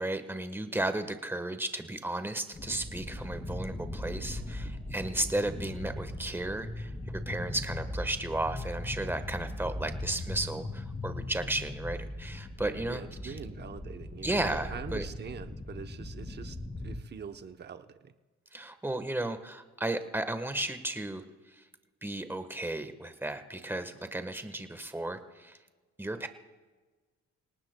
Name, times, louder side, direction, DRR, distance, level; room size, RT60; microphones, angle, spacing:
voice 1, 0.0-13.4 14.2-15.0 18.5-21.2 21.6-21.7 22.0-25.6 26.0-26.3, right 1 dB, 5° right, 9 dB, 1.2 m, -34 dB
sound 1, 2.5-17.0, left 1 dB, 20° left, 2.3 m, -39 dB
voice 2, 12.8-18.1, right 6 dB, 35° right, 8 dB, 0.9 m, -44 dB
28.5 x 18.5 x 2.3 m, 1.4 s
cardioid pair, 90°, 30 cm